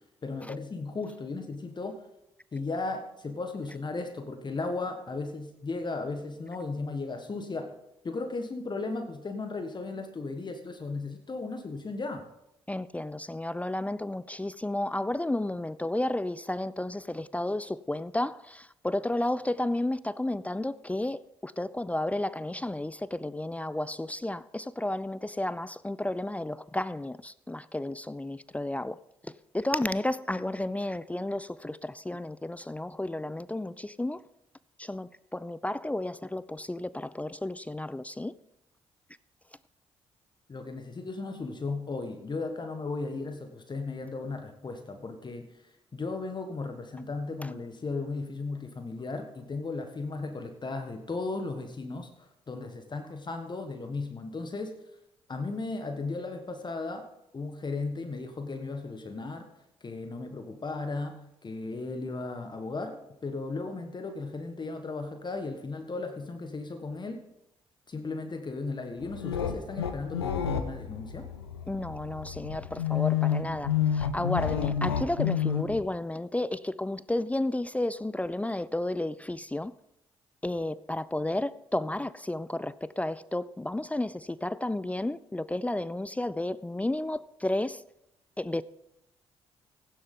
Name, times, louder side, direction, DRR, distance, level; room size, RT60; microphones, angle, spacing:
voice 1, 0.2-2.1 2.5-7.7 8.0-12.2 40.5-54.7 55.3-57.1 57.3-59.5 59.8-67.2 67.9-71.3, left 3 dB, 35° left, 1.4 m, -36 dB
voice 2, 12.7-29.0 29.5-34.2 34.8-38.3 71.7-79.7 80.4-87.8 88.4-88.6, left 1 dB, 10° left, 0.4 m, -32 dB
sound 1, 69.0-75.8, left 9 dB, 90° left, 0.7 m, -30 dB
16.0 x 9.9 x 3.8 m
figure-of-eight pair, 40°, 13 cm